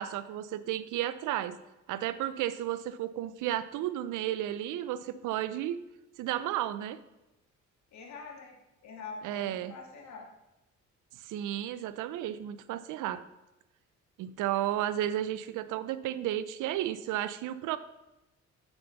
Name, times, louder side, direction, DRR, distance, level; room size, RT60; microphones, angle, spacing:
voice 1, 0.0-1.6 1.9-5.8 6.2-7.0 9.2-9.7 11.2-13.2 14.2-17.8, right 12 dB, 85° right, 14 dB, 0.5 m, -33 dB
voice 2, 7.9-10.2, left 4 dB, 65° left, 1 dB, 1.8 m, -45 dB
7.0 x 7.0 x 4.0 m, 0.97 s
cardioid pair, 90°, 30 cm